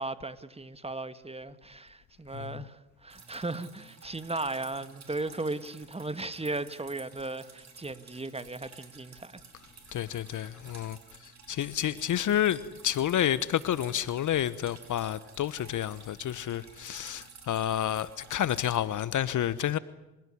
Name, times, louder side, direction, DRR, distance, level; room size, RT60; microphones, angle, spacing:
voice 1, 0.0-2.8 3.0-9.3, right 2 dB, 15° right, 1.9 m, -36 dB
Drip, 3.1-18.8, right 5 dB, 40° right, 6.4 m, -53 dB
voice 2, 9.9-11.0 11.5-19.8, left 11 dB, 45° left, 1.0 m, -29 dB
29.5 x 16.5 x 9.9 m
hypercardioid pair, 60°, 43 cm